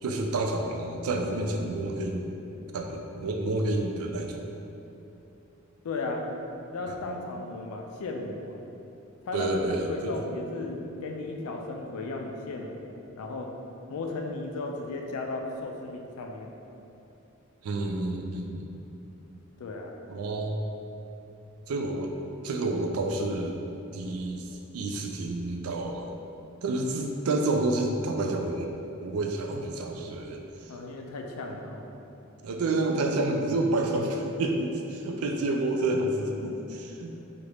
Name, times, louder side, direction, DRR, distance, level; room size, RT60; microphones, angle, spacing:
voice 1, 0.0-2.3 2.7-4.5 6.9-7.0 9.3-10.1 17.6-18.7 20.1-20.6 21.7-22.1 22.4-23.6 23.9-24.5 24.7-26.1 26.6-28.7 29.0-30.7 32.4-37.2, right 2 dB, 80° right, 3 dB, 0.3 m, -29 dB
voice 2, 5.8-6.2 6.7-8.6 9.3-9.6 9.9-13.5 13.9-16.5 19.6-19.9 30.7-31.9, left 3 dB, 80° left, 1 dB, 0.4 m, -35 dB
2.9 x 2.5 x 3.2 m, 2.8 s
head